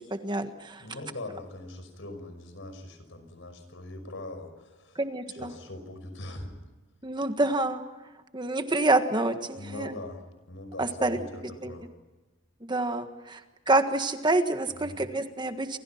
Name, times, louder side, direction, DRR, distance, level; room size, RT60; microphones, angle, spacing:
voice 1, 0.0-0.8 4.9-5.5 7.0-7.8 8.3-9.9 10.8-11.2 11.6-11.7 12.7-13.4 13.7-15.8, right 2 dB, 20° right, 8 dB, 1.5 m, -27 dB
voice 2, 0.8-5.0 5.3-6.5 9.6-11.9 14.8-15.0, left 2 dB, 65° left, 8 dB, 5.8 m, -42 dB
29.5 x 27.0 x 5.9 m, 1.2 s
head